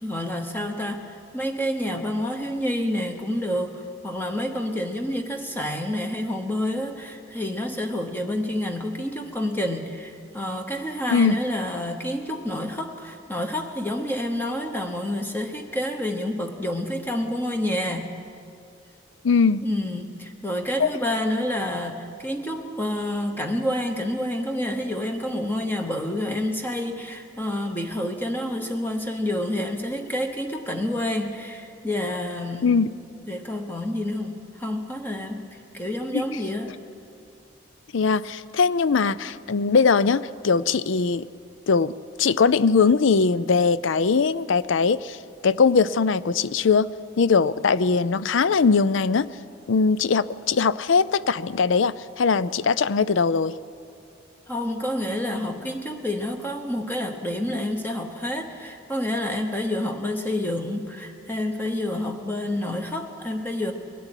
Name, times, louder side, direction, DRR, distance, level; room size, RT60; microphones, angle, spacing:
voice 1, 0.0-18.1 19.6-32.7 33.3-36.7 54.5-63.7, left 1 dB, 10° left, 4 dB, 1.0 m, -28 dB
voice 2, 19.2-19.7 20.8-20.9 32.6-32.9 36.1-36.2 37.9-41.3 41.7-41.9 42.2-45.2 45.4-46.9 47.2-49.3 49.7-53.5, left 5 dB, 70° left, 17 dB, 0.5 m, -20 dB
21.5 x 12.5 x 9.9 m, 2.5 s
head